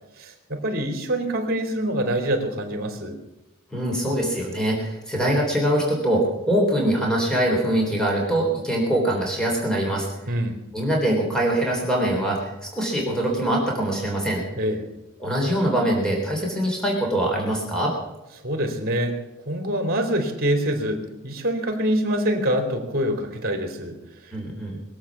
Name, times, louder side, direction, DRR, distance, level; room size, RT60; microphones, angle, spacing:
voice 1, 0.2-3.2 10.3-10.6 14.5-14.8 18.4-19.1 19.4-24.0 24.2-24.3, right 1 dB, 50° right, 4 dB, 3.3 m, -25 dB
voice 2, 3.7-10.1 10.7-14.4 15.2-17.9 24.3-24.8, right 1 dB, 5° left, -1 dB, 3.6 m, -23 dB
22.0 x 8.0 x 7.4 m, 0.95 s
head